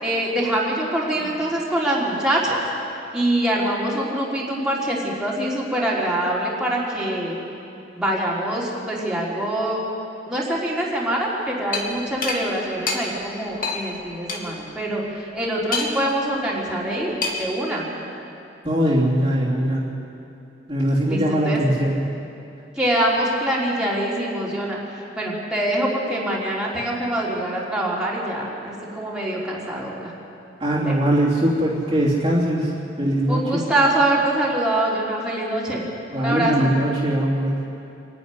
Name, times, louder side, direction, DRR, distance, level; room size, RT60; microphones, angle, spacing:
voice 1, 0.0-2.6 3.1-7.4 8.0-9.8 10.3-17.9 21.1-21.6 22.8-24.8 25.2-30.1 30.7-30.9 33.3-35.8 36.1-36.7, right 1 dB, 5° right, -6 dB, 3.7 m, -24 dB
sound 1, 11.7-11.9 12.2-12.4 12.9-13.0 13.6-13.8 14.3-14.4 15.7-16.1 17.2-17.5, left 4 dB, 45° left, 2.4 m, -25 dB
voice 2, 18.6-19.8 20.7-22.0 30.6-32.7 33.0-33.7 36.1-37.6, right 1 dB, 25° right, -7 dB, 2.9 m, -21 dB
26.5 x 10.5 x 10.0 m, 2.7 s
head